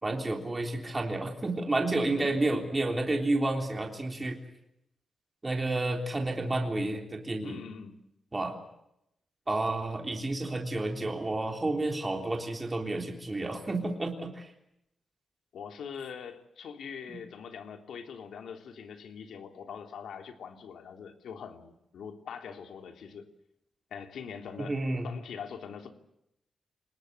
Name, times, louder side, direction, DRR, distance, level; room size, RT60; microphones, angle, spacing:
voice 1, 0.0-4.4 5.4-7.6 8.3-8.5 9.5-14.5 17.1-17.2 24.7-25.1, right 2 dB, 20° right, 2 dB, 3.5 m, -30 dB
voice 2, 7.4-8.0 15.5-23.3 23.9-24.8 25.0-25.9, left 7 dB, 90° left, 5 dB, 3.3 m, -43 dB
28.0 x 20.0 x 8.2 m, 0.82 s
wide cardioid pair, 160°, 0 cm